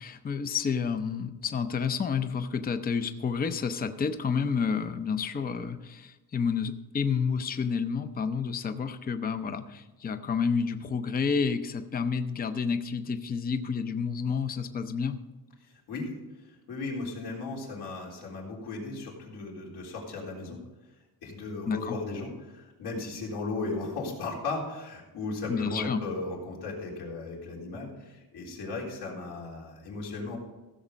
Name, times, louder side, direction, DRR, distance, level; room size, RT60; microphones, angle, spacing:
voice 1, 0.0-15.2 21.7-22.0 25.5-26.0, left 6 dB, 25° left, 9 dB, 0.6 m, -30 dB
voice 2, 15.6-20.6 21.2-30.4, left 3 dB, 80° left, -2 dB, 3.7 m, -36 dB
15.5 x 7.2 x 5.2 m, 1.1 s
cardioid pair, 160°, 39 cm